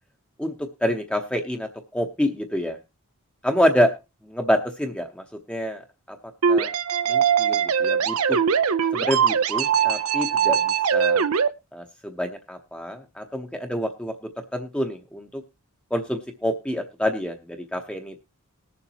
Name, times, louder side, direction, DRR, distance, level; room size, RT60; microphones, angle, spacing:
voice 1, 0.4-2.8 3.4-3.9 4.2-5.8 6.1-6.2 6.5-6.7 7.1-8.4 8.9-11.2 11.7-14.1 14.5-15.4 15.9-18.2, equal, 5° left, 5 dB, 0.8 m, -27 dB
sound 1, 6.4-11.5, right 7 dB, 80° right, 0.6 m, -21 dB
20.0 x 7.0 x 2.9 m, 0.26 s
head